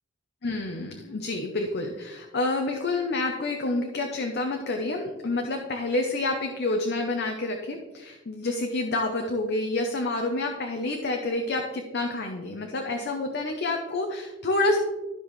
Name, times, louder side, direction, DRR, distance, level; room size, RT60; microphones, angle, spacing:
voice 1, 0.4-14.8, left 2 dB, 55° left, 3 dB, 0.7 m, -28 dB
12.5 x 5.3 x 3.2 m, 1.2 s
head